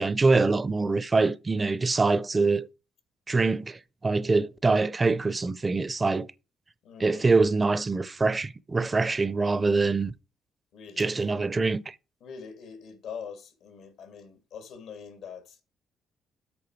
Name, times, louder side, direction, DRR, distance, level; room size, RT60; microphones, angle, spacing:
voice 1, 0.0-2.7 3.3-6.3 7.0-10.1 11.0-11.9, right 3 dB, 25° right, 0.6 m, -24 dB
voice 2, 6.8-7.3 10.7-11.3 12.2-15.6, left 6 dB, 85° left, 2.1 m, -43 dB
8.6 x 6.3 x 4.7 m
cardioid pair, 90°, 0 cm